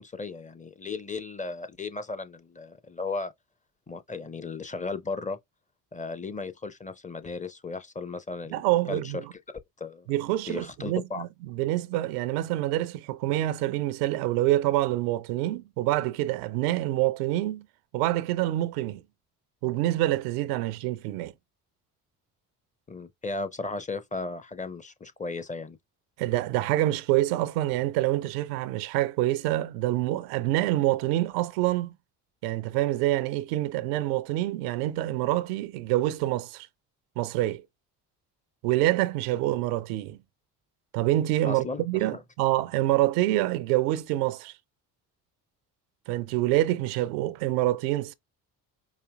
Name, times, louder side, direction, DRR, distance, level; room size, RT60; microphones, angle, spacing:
voice 1, 0.0-3.3 3.9-5.4 5.9-8.6 8.9-9.4 9.8-10.1 10.5-11.3 22.9-25.8 41.4-42.2, left 3 dB, 15° left, 0.6 m, -35 dB
voice 2, 8.5-9.3 10.1-17.7 17.9-19.0 19.6-21.3 26.2-31.9 32.4-36.7 37.2-37.6 38.6-40.2 40.9-44.5 46.1-48.1, right 15 dB, 75° right, 0.5 m, -26 dB
5.0 x 2.6 x 2.3 m
hypercardioid pair, 50°, 48 cm